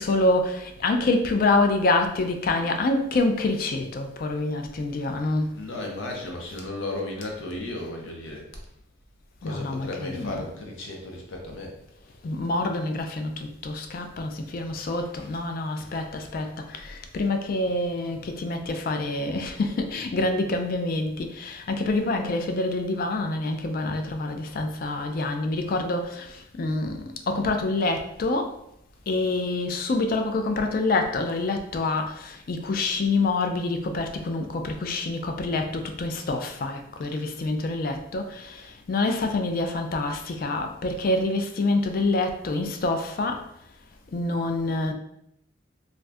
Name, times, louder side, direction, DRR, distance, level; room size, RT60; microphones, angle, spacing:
voice 1, 0.0-5.5 9.4-10.5 12.2-28.6 29.1-43.5 44.1-44.9, left 2 dB, 45° left, 5 dB, 0.3 m, -26 dB
voice 2, 5.5-8.5 9.4-11.8 14.8-15.4 15.8-16.0 16.3-16.5, left 2 dB, 85° left, 0 dB, 0.7 m, -35 dB
2.5 x 2.3 x 3.3 m, 0.76 s
head